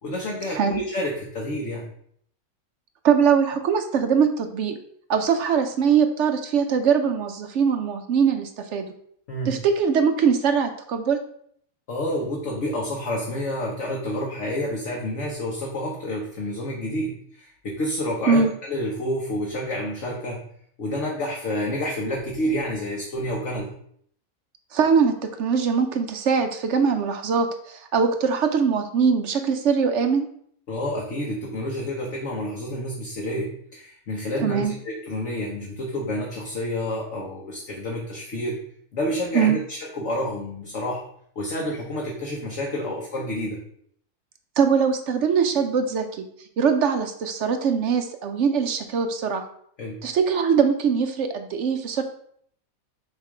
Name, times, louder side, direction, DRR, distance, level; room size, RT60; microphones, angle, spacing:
voice 1, 0.0-1.9 9.3-9.6 11.9-20.4 20.8-23.7 30.7-38.6 38.9-41.0 41.4-43.6 49.8-50.0, left 1 dB, 55° left, -2 dB, 1.3 m, -29 dB
voice 2, 3.0-4.8 5.1-8.9 9.5-11.2 18.3-18.5 24.7-30.3 34.4-34.7 39.3-39.6 44.6-46.2 46.6-49.4 50.0-52.0, right 6 dB, 65° right, 7 dB, 0.8 m, -22 dB
6.6 x 3.0 x 4.8 m, 0.65 s
omnidirectional pair, 1.6 m